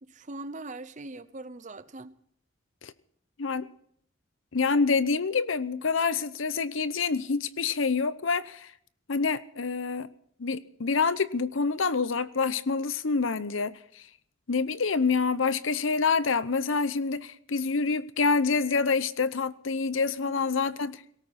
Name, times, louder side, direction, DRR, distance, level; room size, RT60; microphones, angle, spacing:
voice 1, 0.0-2.2 20.3-20.4, right 2 dB, 40° right, 0.8 m, -41 dB
voice 2, 4.5-8.7 9.1-10.1 10.4-13.7 14.5-21.0, left 4 dB, 75° left, 0.8 m, -27 dB
18.5 x 18.0 x 4.3 m
head